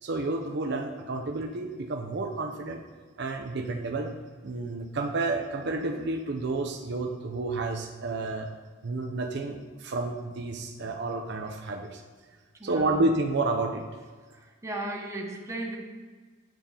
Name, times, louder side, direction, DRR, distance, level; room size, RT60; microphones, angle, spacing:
voice 1, 0.0-2.8 3.2-4.1 4.4-8.5 8.8-12.0 12.6-13.8, right 2 dB, 60° right, 3 dB, 0.6 m, -30 dB
voice 2, 12.6-13.0 14.3-15.8, right 1 dB, 15° right, 0 dB, 1.0 m, -36 dB
9.0 x 3.7 x 5.6 m, 1.5 s
head